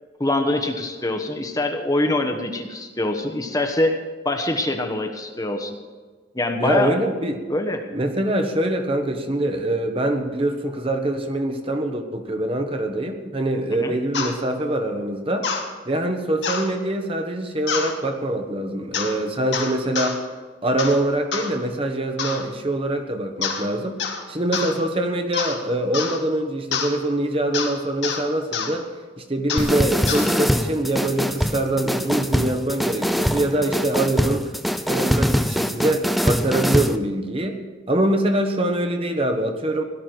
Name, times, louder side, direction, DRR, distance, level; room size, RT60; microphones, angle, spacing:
voice 1, 0.2-4.0 4.2-5.8 6.3-7.0 7.5-7.8 13.8-13.9, left 2 dB, 20° left, 5 dB, 1.1 m, -24 dB
voice 2, 6.6-7.4 7.9-15.5 15.9-20.2 20.6-28.9 29.2-34.5 34.9-37.6 37.9-39.8, right 1 dB, 30° right, 5 dB, 1.2 m, -24 dB
sound 1, 14.1-14.3 15.4-15.6 16.4-16.7 17.7-17.9 18.9-19.2 19.5-20.1 20.8-21.0 21.3-21.5 22.2-22.4 23.4-23.7 24.0-24.2 24.5-24.7 25.3-25.6 25.9-26.2 26.7-26.9 27.5-27.7 28.0-28.2 28.5-28.7 29.5-29.7 30.1-30.3, left 6 dB, 65° left, 2.2 m, -26 dB
sound 2, 29.6-37.0, equal, ahead, 0.5 m, -23 dB
17.5 x 12.0 x 4.6 m, 1.4 s
head